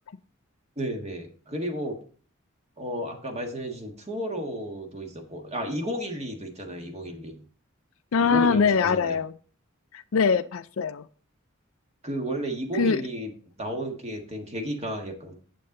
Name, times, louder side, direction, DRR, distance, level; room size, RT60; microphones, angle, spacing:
voice 1, 0.8-2.0 2.8-7.5 8.2-9.2 12.0-13.3 13.6-15.3, right 1 dB, 30° right, 3 dB, 1.6 m, -33 dB
voice 2, 8.1-9.3 9.9-11.1 12.8-13.0, left 5 dB, 75° left, 12 dB, 0.5 m, -22 dB
8.6 x 7.5 x 3.8 m, 0.42 s
head